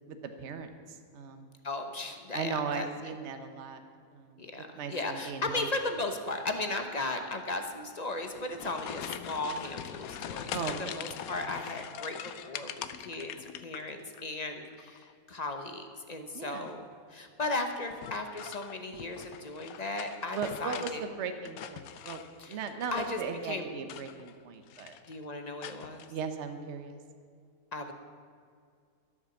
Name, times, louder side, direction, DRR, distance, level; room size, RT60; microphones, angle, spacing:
voice 1, 0.1-0.7 1.1-1.5 2.3-3.8 4.1-5.7 10.5-11.0 16.3-16.7 20.3-22.2 22.5-25.0 26.1-27.0, right 5 dB, 50° right, 7 dB, 1.2 m, -37 dB
voice 2, 1.6-2.9 4.4-10.5 10.8-21.0 22.4-22.6 22.9-23.7 25.1-26.1 27.7-27.9, left 2 dB, 30° left, 6 dB, 0.9 m, -36 dB
sound 1, 8.2-14.2 14.5-15.1 16.5-16.9 17.9-21.0 21.3-23.3 23.8-24.4 24.7-25.1 25.6-26.1, left 9 dB, 70° left, 1.0 m, -43 dB
13.0 x 8.6 x 7.1 m, 2.2 s
omnidirectional pair, 1.7 m